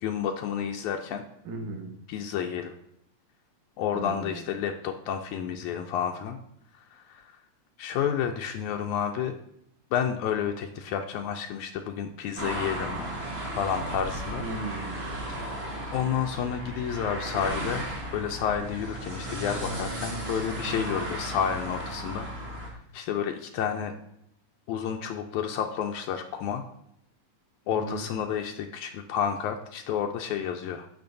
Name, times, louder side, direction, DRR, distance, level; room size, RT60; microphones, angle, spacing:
voice 1, 0.0-1.3 2.1-2.7 3.8-6.4 6.7-7.3 7.8-9.4 9.9-13.1 13.6-14.4 15.9-17.9 18.1-23.9 24.7-26.6 27.7-30.9, left 8 dB, 85° left, 3 dB, 2.0 m, -30 dB
voice 2, 1.4-2.0 3.9-4.5 14.4-15.0 27.7-28.1, right 3 dB, 85° right, 1 dB, 2.8 m, -36 dB
sound 1, 12.4-22.7, right 1 dB, 50° right, 0.7 m, -35 dB
14.5 x 5.1 x 2.6 m, 0.74 s
omnidirectional pair, 3.3 m